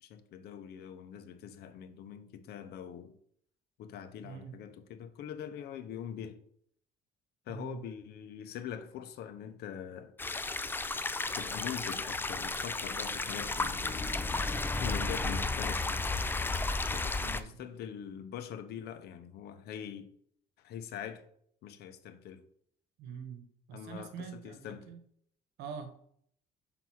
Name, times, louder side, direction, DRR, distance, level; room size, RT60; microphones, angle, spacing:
voice 1, 0.0-3.2 3.8-6.4 7.5-10.1 11.3-14.1 14.8-16.0 16.9-20.1 20.6-21.3 21.6-22.4 23.7-24.9, left 9 dB, 75° left, 0.8 m, -43 dB
voice 2, 4.2-4.5 7.5-7.8 15.2-15.4 17.3-17.6 23.0-25.0 25.6-26.1, right 7 dB, 85° right, 1.1 m, -45 dB
sound 1, 10.2-17.4, left 3 dB, 10° left, 0.4 m, -33 dB
5.7 x 3.9 x 6.1 m
cardioid pair, 110°, 17 cm